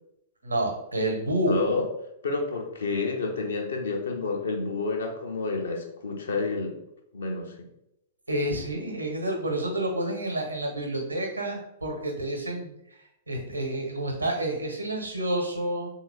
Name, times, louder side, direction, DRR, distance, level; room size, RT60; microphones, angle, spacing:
voice 1, 0.4-1.6 8.3-12.7 13.3-15.9, right 1 dB, 85° right, 2 dB, 1.0 m, -29 dB
voice 2, 1.4-1.9 2.2-6.8 7.1-7.5, left 3 dB, 65° left, 2 dB, 0.7 m, -29 dB
3.7 x 2.7 x 3.3 m, 0.79 s
figure-of-eight pair, 105°, 0 cm